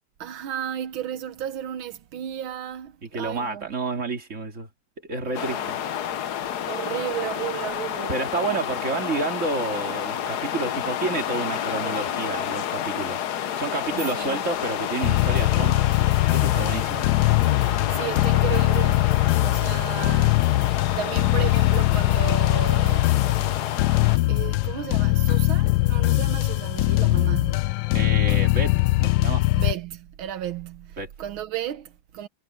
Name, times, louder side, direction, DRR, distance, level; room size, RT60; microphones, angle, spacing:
voice 1, 0.2-3.7 5.2-5.7 6.6-8.2 13.9-14.4 17.7-19.1 19.4-20.4 21.0-23.1 24.3-27.7 29.5-32.3, right 11 dB, 85° right, 1.8 m, -34 dB
voice 2, 3.0-4.7 5.1-5.8 8.1-13.2 13.5-15.8 16.3-17.1 27.9-29.5 31.0-31.1, right 3 dB, 35° right, 3.0 m, -30 dB
sound 1, 5.3-24.2, left 10 dB, 60° left, 1.3 m, -30 dB
sound 2, 15.0-29.7, left 18 dB, 75° left, 1.2 m, -21 dB
omnidirectional pair, 2.2 m